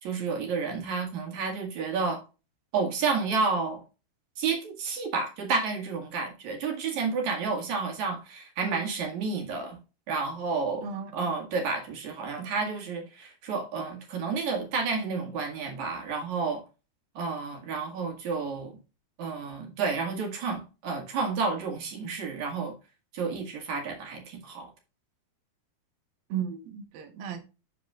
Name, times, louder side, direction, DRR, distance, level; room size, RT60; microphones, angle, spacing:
voice 1, 0.0-2.2 2.7-3.8 4.4-9.8 10.1-10.9 11.1-16.6 17.1-18.8 19.2-22.7 23.1-24.7, right 4 dB, 55° right, 3.1 m, -30 dB
voice 2, 10.8-11.3 26.3-27.4, right 8 dB, 75° right, 3.0 m, -35 dB
13.0 x 4.6 x 2.4 m
omnidirectional pair, 4.3 m